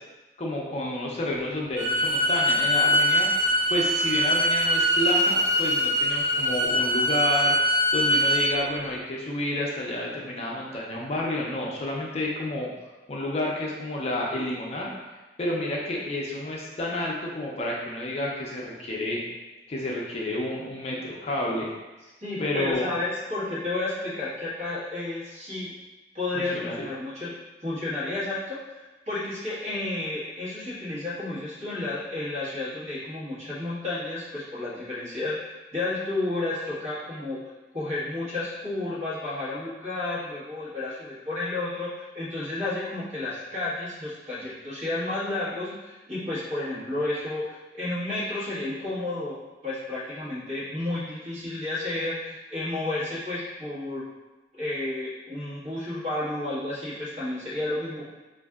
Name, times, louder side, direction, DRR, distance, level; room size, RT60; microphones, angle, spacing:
voice 1, 0.4-3.3 3.7-7.6 7.9-12.7 13.1-14.9 15.4-19.2 19.7-21.7 22.4-22.9 26.3-26.9, left 1 dB, 35° left, -3 dB, 0.5 m, -30 dB
Bowed string instrument, 1.7-8.5, equal, 60° right, 0.9 m, -23 dB
voice 2, 22.2-25.7 26.1-27.3 27.6-37.4 37.7-49.3 49.6-54.1 54.5-58.0, left 2 dB, 40° right, -9 dB, 1.5 m, -31 dB
5.1 x 2.5 x 2.3 m, 1.1 s
head